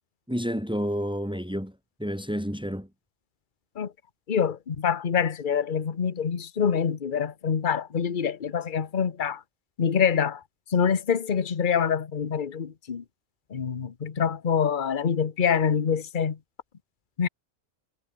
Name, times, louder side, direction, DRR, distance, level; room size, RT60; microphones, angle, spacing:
voice 1, 0.3-2.9, equal, 5° right, 5.4 m, -30 dB
voice 2, 4.3-9.4 9.8-10.4 10.7-13.0 13.5-16.4 17.2-17.3, left 7 dB, 40° left, 1.2 m, -25 dB
omnidirectional pair, 1.3 m